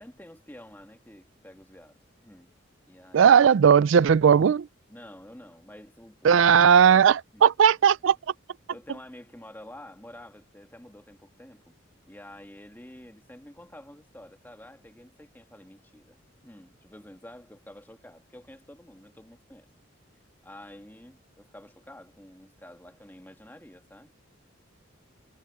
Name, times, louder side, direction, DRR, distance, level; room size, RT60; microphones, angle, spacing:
voice 1, 0.0-2.5 2.9-3.4 4.9-6.6 7.3-7.4 8.7-11.7 12.1-16.2 16.4-19.7 20.4-24.2, left 1 dB, 10° left, 1.8 m, -49 dB
voice 2, 3.1-4.7 6.2-8.2, right 7 dB, 75° right, 0.4 m, -17 dB
head